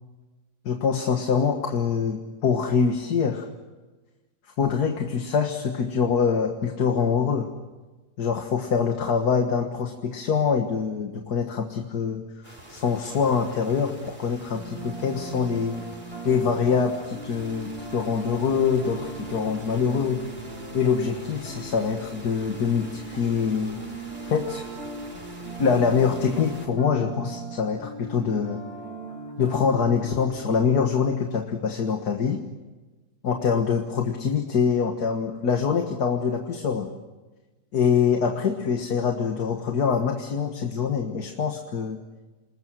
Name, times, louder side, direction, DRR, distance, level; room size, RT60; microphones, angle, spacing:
voice 1, 0.7-3.5 4.6-7.5 8.2-15.7 16.2-20.2 20.7-23.8 24.3-24.7 25.6-28.6 29.4-32.4 33.2-36.9 37.7-42.0, left 6 dB, 80° left, 3 dB, 2.1 m, -24 dB
sound 1, 12.4-26.7, right 1 dB, 30° right, 4.3 m, -45 dB
sound 2, 14.5-30.6, right 3 dB, 40° left, 5.8 m, -39 dB
29.5 x 20.5 x 7.7 m, 1.2 s
omnidirectional pair, 1.7 m